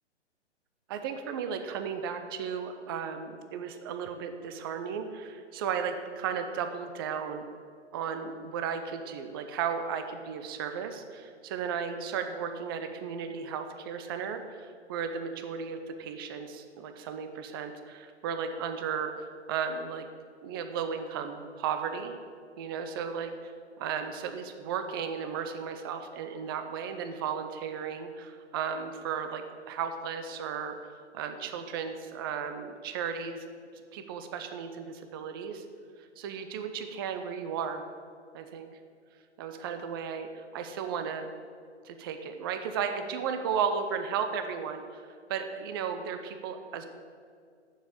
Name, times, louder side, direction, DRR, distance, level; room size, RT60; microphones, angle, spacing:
voice 1, 0.9-7.5 7.9-19.1 19.5-20.1 20.4-22.2 22.6-23.5 23.8-30.8 31.1-33.5 33.9-35.6 36.2-37.8 38.3-38.7 39.4-41.3 41.8-44.8 45.3-46.9, right 7 dB, 20° right, 7 dB, 0.5 m, -35 dB
7.2 x 7.1 x 8.2 m, 2.2 s
figure-of-eight pair, 125°, 35 cm